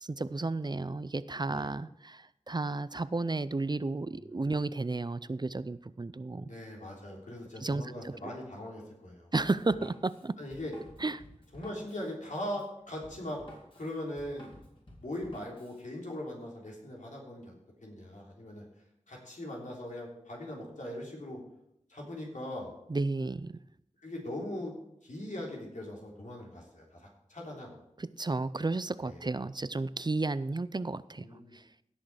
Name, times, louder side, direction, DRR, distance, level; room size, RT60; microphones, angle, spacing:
voice 1, 0.0-6.5 7.6-8.3 9.3-10.4 11.0-11.2 22.9-23.6 28.0-31.2 31.5-31.6, right 3 dB, 35° right, 16 dB, 0.4 m, -33 dB
voice 2, 6.4-9.3 10.4-10.8 11.5-13.4 13.8-14.5 15.0-17.5 17.8-18.6 19.1-21.4 21.9-22.7 24.0-24.7 25.0-27.7 29.0-29.2 31.2-31.5, left 1 dB, 85° left, -2 dB, 3.5 m, -40 dB
Drum kit, 9.3-15.8, equal, 45° left, 3.9 m, -53 dB
17.0 x 6.4 x 4.9 m, 0.79 s
wide cardioid pair, 45°, 13 cm